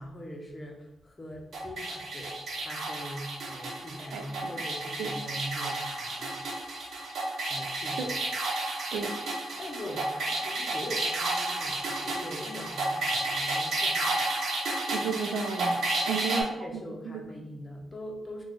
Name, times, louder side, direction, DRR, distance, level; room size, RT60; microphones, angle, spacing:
voice 1, 0.0-6.5 7.5-8.2 9.6-14.3 16.0-18.4, equal, 30° left, 1 dB, 0.8 m, -42 dB
sound 1, 1.5-16.4, right 2 dB, 70° right, 0.8 m, -31 dB
voice 2, 14.9-16.4 16.7-17.2, right 5 dB, 85° right, 5 dB, 0.4 m, -33 dB
3.8 x 2.3 x 3.1 m, 0.88 s
cardioid pair, 85°, 0 cm